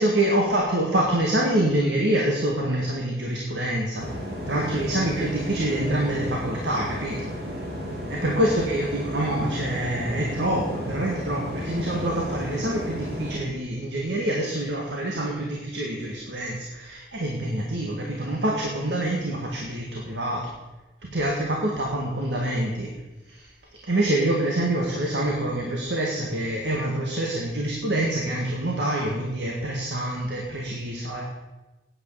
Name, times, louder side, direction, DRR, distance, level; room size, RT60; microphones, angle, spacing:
voice 1, 0.0-4.1 4.5-7.3 8.1-20.5 21.0-22.9 23.3-23.5 23.8-31.2, right 1 dB, 90° right, -1 dB, 1.9 m, -26 dB
sound 1, 4.0-13.4, equal, 60° right, 4.0 m, -33 dB
9.3 x 9.2 x 7.0 m, 1.1 s
head